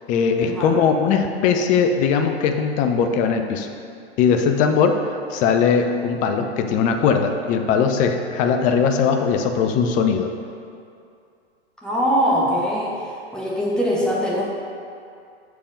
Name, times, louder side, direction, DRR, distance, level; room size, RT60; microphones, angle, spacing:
voice 1, 0.1-3.7 4.2-5.0 5.3-10.3, left 6 dB, 25° left, 5 dB, 0.5 m, -20 dB
voice 2, 11.8-13.0 13.3-14.4, equal, ahead, -6 dB, 1.4 m, -22 dB
6.9 x 4.7 x 5.1 m, 2.4 s
figure-of-eight pair, 110°, 33 cm